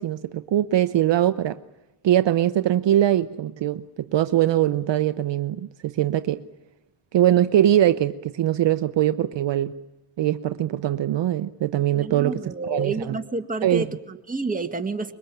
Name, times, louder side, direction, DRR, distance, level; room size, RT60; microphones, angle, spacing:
voice 1, 0.0-1.6 2.0-6.4 7.1-9.8 10.2-13.2 13.6-13.8, right 12 dB, 60° right, 0.8 m, -22 dB
voice 2, 11.9-15.1, right 3 dB, 15° right, 2.0 m, -29 dB
25.0 x 22.0 x 9.1 m
cardioid pair, 120°, 50 cm